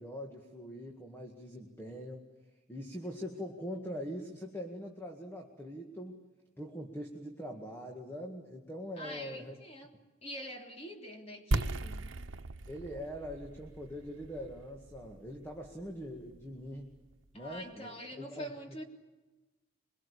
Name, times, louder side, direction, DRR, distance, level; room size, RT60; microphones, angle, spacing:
voice 1, 0.0-2.2 2.7-6.2 6.6-9.6 12.7-16.9 17.3-18.5, equal, 10° left, 2 dB, 2.0 m, -43 dB
voice 2, 9.0-12.0 17.3-18.8, equal, 30° left, 2 dB, 3.4 m, -45 dB
sound 1, 11.5-17.2, right 2 dB, 90° right, 1.0 m, -38 dB
23.5 x 23.0 x 8.5 m, 1.1 s
head